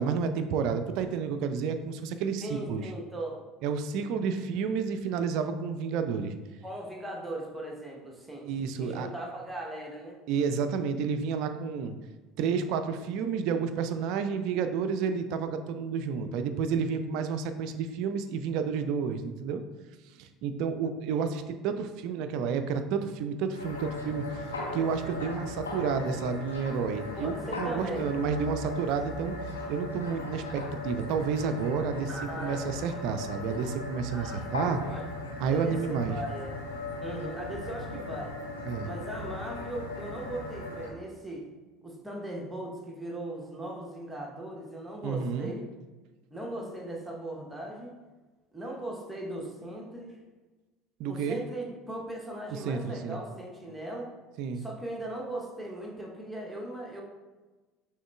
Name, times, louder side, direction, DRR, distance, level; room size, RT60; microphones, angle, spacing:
voice 1, 0.0-2.9 3.6-6.3 8.4-9.1 10.3-11.9 12.4-19.6 20.2-24.4 24.7-29.3 29.7-32.1 32.4-34.8 35.4-36.2 38.6-38.9 45.0-45.5 51.0-51.4 52.5-53.2 54.4-54.6, right 6 dB, 55° right, 8 dB, 0.3 m, -30 dB
voice 2, 2.4-3.4 6.6-8.5 8.8-10.2 21.1-21.3 27.1-28.1 32.1-32.6 34.1-34.4 34.8-35.0 35.5-36.6 37.0-38.3 38.8-41.5 41.8-45.6 46.3-47.9 48.5-50.2 51.1-54.1 54.6-57.0, right 1 dB, 10° right, -1 dB, 0.9 m, -38 dB
sound 1, 23.5-40.9, left 2 dB, 80° left, 0.9 m, -38 dB
6.2 x 3.1 x 2.3 m, 1.2 s
figure-of-eight pair, 65°, 0 cm